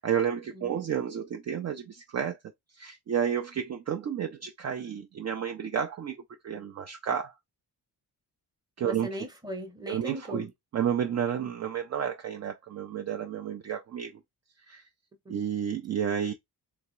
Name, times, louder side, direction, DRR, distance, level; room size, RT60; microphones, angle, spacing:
voice 1, 0.0-2.4 2.7-7.3 8.8-9.1 9.9-10.5 10.7-14.2 14.7-14.8 15.3-16.3, right 8 dB, 40° right, 0.4 m, -31 dB
voice 2, 8.8-10.5 15.3-15.4, equal, 10° right, 0.8 m, -38 dB
3.4 x 2.9 x 3.0 m
wide cardioid pair, 150°, 40 cm